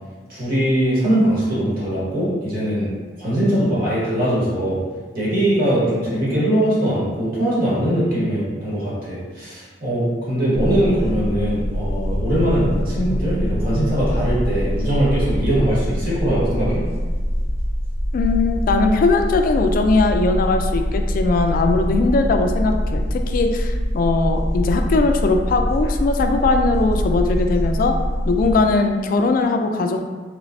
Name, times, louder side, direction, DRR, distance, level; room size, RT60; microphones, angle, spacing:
voice 1, 0.3-2.9 3.2-4.8 5.1-16.8, right 1 dB, 55° right, -8 dB, 1.4 m, -21 dB
sound 1, 10.5-28.5, equal, 80° right, 1.5 m, -24 dB
voice 2, 18.1-28.0 28.3-30.0, left 3 dB, 50° left, 5 dB, 0.3 m, -19 dB
3.2 x 3.1 x 2.6 m, 1.5 s
head